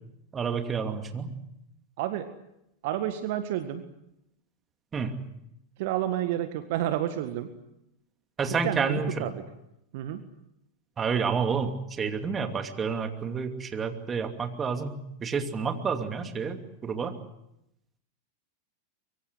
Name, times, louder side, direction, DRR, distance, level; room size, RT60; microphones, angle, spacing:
voice 1, 0.3-1.3 4.9-5.2 8.4-9.3 11.0-17.1, right 5 dB, 20° right, 6 dB, 2.6 m, -29 dB
voice 2, 2.0-2.3 2.8-3.8 5.8-7.5 8.6-9.3 9.9-10.2, right 12 dB, 50° right, 9 dB, 1.7 m, -30 dB
24.0 x 23.5 x 8.0 m, 0.83 s
figure-of-eight pair, 90°, 0 cm